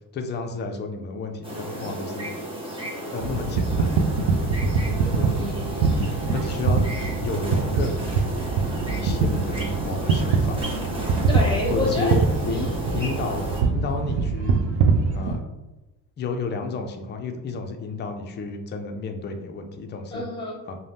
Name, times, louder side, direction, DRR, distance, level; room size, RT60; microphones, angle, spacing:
voice 1, 0.1-2.3 3.1-4.1 5.1-5.4 6.3-6.9 7.2-8.4 8.8-10.7 11.7-12.2 12.5-14.6 15.1-15.4 16.2-20.2 20.7-20.8, left 4 dB, 25° left, 4 dB, 0.3 m, -32 dB
sound 1, 1.4-13.6, right 1 dB, 10° right, 0.7 m, -33 dB
sound 2, 3.2-15.4, right 4 dB, 75° right, 0.5 m, -24 dB
voice 2, 5.0-6.1 11.3-12.2 12.5-12.7 20.1-20.6, left 2 dB, 10° left, -3 dB, 1.2 m, -29 dB
2.6 x 2.1 x 3.3 m, 1.1 s
supercardioid pair, 85°, 46 cm